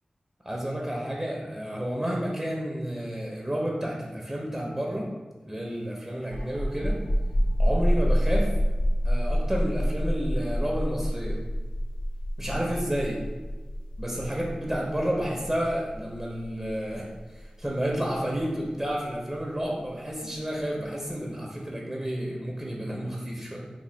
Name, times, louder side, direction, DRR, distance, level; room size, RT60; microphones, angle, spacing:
voice 1, 0.5-5.1 5.4-7.0 7.6-8.5 9.0-11.4 12.4-13.3 14.0-17.0 17.3-23.6, equal, 20° right, -2 dB, 0.6 m, -30 dB
sound 1, 6.2-19.6, equal, 40° left, 0.3 m, -27 dB
3.6 x 2.2 x 3.2 m, 1.2 s
wide cardioid pair, 50°, 2 cm